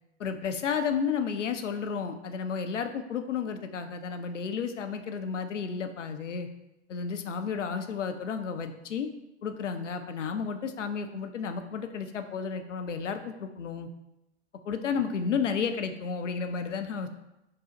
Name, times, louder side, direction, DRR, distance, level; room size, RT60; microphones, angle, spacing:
voice 1, 0.2-6.5 6.9-9.1 9.4-13.9 14.6-17.1, left 6 dB, 85° left, 7 dB, 0.5 m, -32 dB
5.1 x 2.0 x 3.9 m, 0.91 s
figure-of-eight pair, 105°, 35 cm